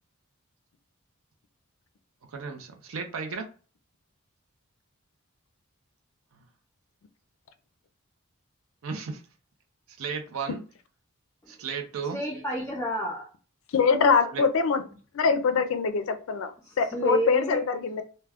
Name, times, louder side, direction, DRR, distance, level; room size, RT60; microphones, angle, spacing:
voice 1, 2.3-3.4 8.8-9.2 10.0-10.6 11.5-12.2 14.3-14.4, right 5 dB, 75° right, 4 dB, 0.5 m, -34 dB
voice 2, 12.1-13.3 13.9-14.0 16.6-17.6, equal, 10° left, -4 dB, 0.4 m, -30 dB
voice 3, 13.7-14.8 15.1-16.5 16.8-18.0, left 5 dB, 70° left, 10 dB, 0.4 m, -23 dB
2.2 x 2.1 x 3.4 m, 0.38 s
head